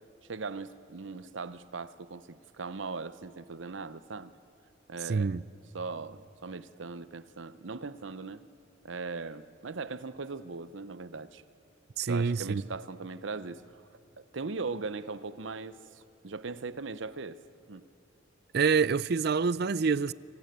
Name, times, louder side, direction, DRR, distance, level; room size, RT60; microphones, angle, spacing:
voice 1, 0.3-4.3 4.9-5.3 5.7-8.4 8.8-11.4 12.0-13.8 14.2-17.4 17.7-17.8, right 4 dB, 75° right, 0.8 m, -39 dB
voice 2, 5.0-5.4 12.0-12.6 18.5-20.1, right 5 dB, 55° right, 0.5 m, -26 dB
27.5 x 19.0 x 9.2 m
head